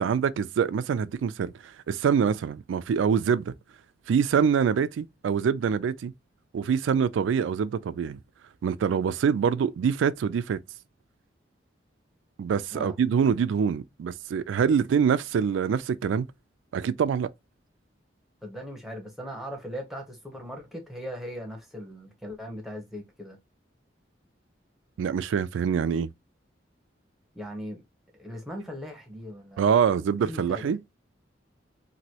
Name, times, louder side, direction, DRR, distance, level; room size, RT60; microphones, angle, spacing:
voice 1, 0.0-3.5 4.1-6.1 6.5-8.2 8.6-10.6 12.4-16.3 16.7-17.3 25.0-26.1 29.6-30.8, right 7 dB, 85° right, 0.3 m, -25 dB
voice 2, 18.4-23.4 27.3-27.8 28.2-29.7 30.1-30.7, equal, ahead, 0.8 m, -39 dB
3.0 x 2.6 x 2.8 m
head